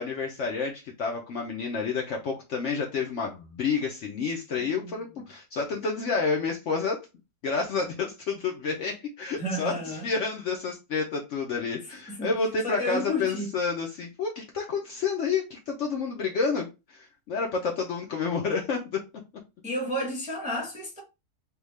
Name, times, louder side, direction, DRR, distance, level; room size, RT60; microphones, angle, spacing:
voice 1, 0.0-7.0 7.4-18.8, left 4 dB, 65° left, 0.8 m, -29 dB
voice 2, 9.4-10.1 12.1-12.3 12.6-13.5 19.6-21.0, left 1 dB, 5° right, 0.6 m, -31 dB
3.5 x 2.3 x 3.1 m
omnidirectional pair, 1.7 m